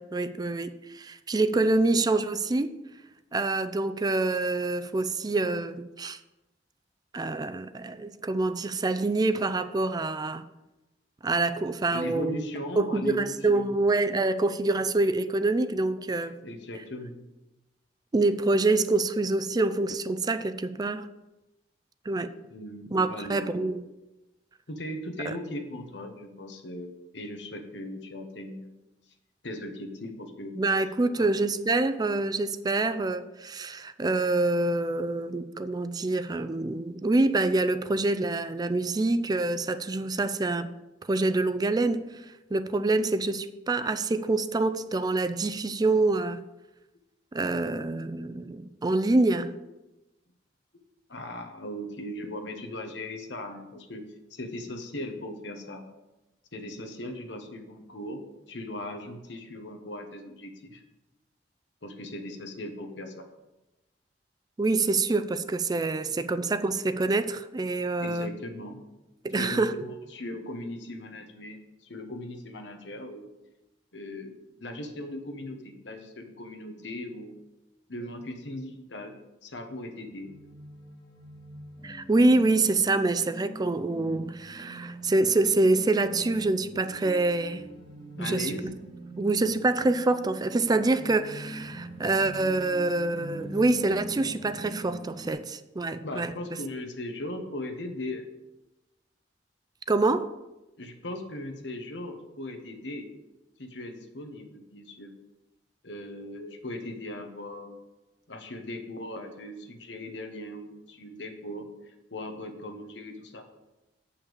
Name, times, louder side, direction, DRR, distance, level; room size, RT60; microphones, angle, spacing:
voice 1, 0.0-2.7 3.3-6.2 7.1-10.5 11.2-12.3 12.8-16.4 18.1-21.1 22.1-22.3 22.9-23.8 25.3-25.4 30.6-40.7 41.1-42.0 42.5-46.4 47.3-49.5 64.6-68.3 69.2-69.8 81.8-87.6 88.2-88.7 89.2-96.3 99.9-100.3, right 2 dB, 20° right, 0.4 m, -26 dB
voice 2, 11.9-13.8 16.4-17.2 22.5-23.8 24.7-28.7 29.4-30.6 31.2-31.3 51.1-54.0 54.3-55.8 56.5-60.8 61.8-63.3 68.0-68.9 69.3-73.3 73.9-77.4 77.9-79.2 79.4-80.3 88.2-88.7 96.0-98.3 100.8-103.1 103.6-105.1 105.8-107.8 108.3-113.4, left 1 dB, 75° left, 1.3 m, -38 dB
sound 1, 80.0-95.3, right 1 dB, 30° left, 1.6 m, -43 dB
8.1 x 5.6 x 7.0 m
head